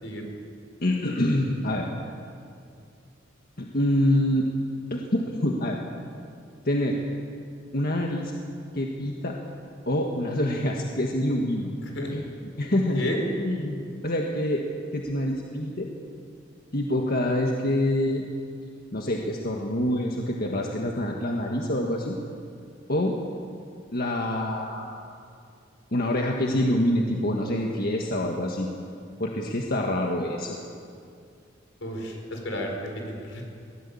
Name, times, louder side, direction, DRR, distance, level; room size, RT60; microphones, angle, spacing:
voice 1, 0.8-1.9 3.6-4.5 4.9-5.8 6.7-7.0 7.7-8.3 8.7-9.4 9.9-11.7 12.1-12.2 12.6-13.0 13.4-14.6 14.9-15.9 16.7-18.2 18.9-22.2 22.9-23.1 23.9-25.0 25.9-28.7 29.2-30.6, left 1 dB, 55° left, 0 dB, 1.7 m, -26 dB
voice 2, 31.8-33.5, left 1 dB, 80° left, 2 dB, 4.9 m, -32 dB
23.0 x 17.5 x 8.6 m, 2.4 s
head